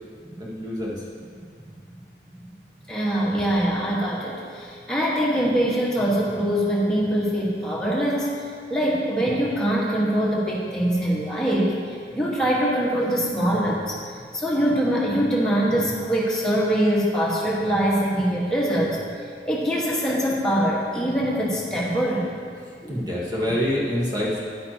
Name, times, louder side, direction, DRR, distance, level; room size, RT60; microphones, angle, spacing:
voice 1, 0.4-0.9 22.9-24.4, equal, 20° right, -5 dB, 1.3 m, -26 dB
voice 2, 2.9-19.0 19.4-22.3 22.8-23.1, equal, 5° left, -6 dB, 1.4 m, -23 dB
10.5 x 9.4 x 2.9 m, 2.1 s
head